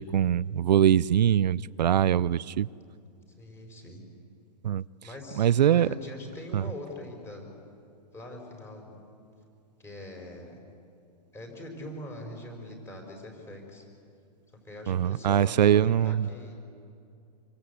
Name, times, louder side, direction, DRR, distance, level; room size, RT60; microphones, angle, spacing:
voice 1, 0.0-2.7 4.6-4.8 5.4-5.9 6.5-6.6 14.9-16.3, right 10 dB, 90° right, 0.6 m, -23 dB
voice 2, 3.4-4.0 5.0-7.5 8.1-9.0 9.8-10.6 11.3-13.9 14.6-16.6, left 1 dB, 10° left, 5.0 m, -42 dB
26.5 x 24.5 x 8.3 m
hypercardioid pair, 150°, 21 cm